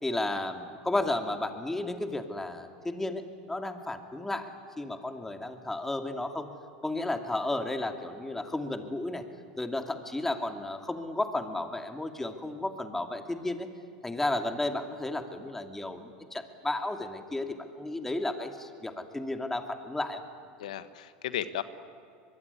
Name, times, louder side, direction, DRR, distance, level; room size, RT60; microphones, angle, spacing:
voice 1, 0.0-4.5 4.8-6.5 6.8-9.2 9.6-13.7 14.0-20.2, left 2 dB, 10° left, 6 dB, 2.5 m, -33 dB
voice 2, 20.6-21.6, left 11 dB, 85° left, 13 dB, 1.3 m, -35 dB
23.5 x 22.5 x 9.7 m, 2.4 s
hypercardioid pair, 100°, 4 cm